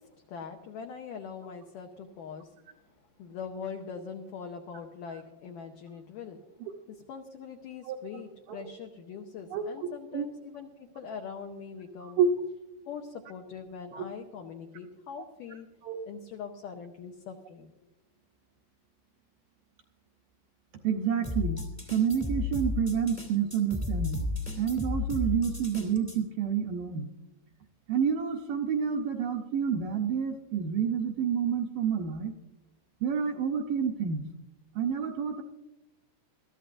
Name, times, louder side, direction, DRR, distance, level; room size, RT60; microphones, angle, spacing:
voice 1, 0.0-6.4 6.9-12.2 12.9-15.7 16.1-17.7, left 6 dB, 75° left, 3 dB, 2.0 m, -42 dB
voice 2, 20.8-21.6 21.9-24.3 24.6-27.1 27.9-32.3 33.0-34.2 34.8-35.4, right 7 dB, 75° right, 2 dB, 2.1 m, -29 dB
sound 1, 21.2-26.2, left 2 dB, 15° left, 0.5 m, -33 dB
22.0 x 14.0 x 2.6 m, 0.97 s
omnidirectional pair, 4.8 m